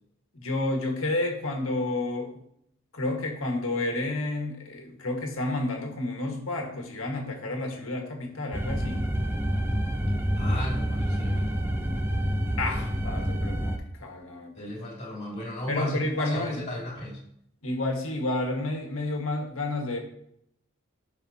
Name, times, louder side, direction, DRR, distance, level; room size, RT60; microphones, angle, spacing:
voice 1, 0.3-2.4 2.9-9.1 12.6-14.7 15.7-16.6 17.6-20.0, left 2 dB, 85° left, 2 dB, 1.7 m, -30 dB
sound 1, 8.5-13.8, equal, 10° right, 0.5 m, -27 dB
voice 2, 10.4-12.0 14.5-17.2, left 1 dB, 30° left, -4 dB, 2.9 m, -35 dB
12.0 x 5.2 x 2.8 m, 0.73 s
head